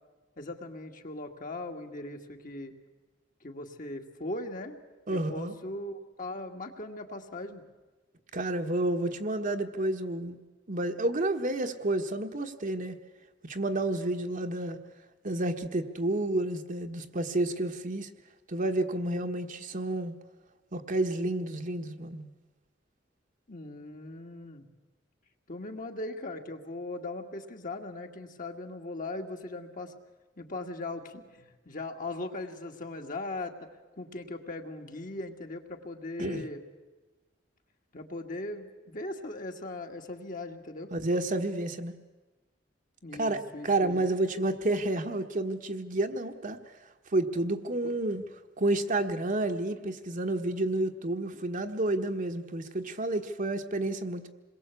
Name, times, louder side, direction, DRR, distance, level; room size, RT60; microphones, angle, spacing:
voice 1, 0.4-2.7 3.4-4.8 5.1-7.7 23.5-24.7 25.5-29.9 30.4-33.7 34.0-36.6 37.9-40.9 43.0-44.0 47.8-47.9, left 2 dB, 45° left, 4 dB, 2.0 m, -39 dB
voice 2, 5.1-5.5 8.3-10.4 10.7-13.0 13.4-14.8 15.2-18.1 18.5-20.1 20.7-22.3 36.2-36.4 40.9-41.9 43.2-46.6 47.1-48.3 48.6-54.3, right 2 dB, 45° right, 5 dB, 1.4 m, -30 dB
27.5 x 21.5 x 8.4 m, 1.2 s
head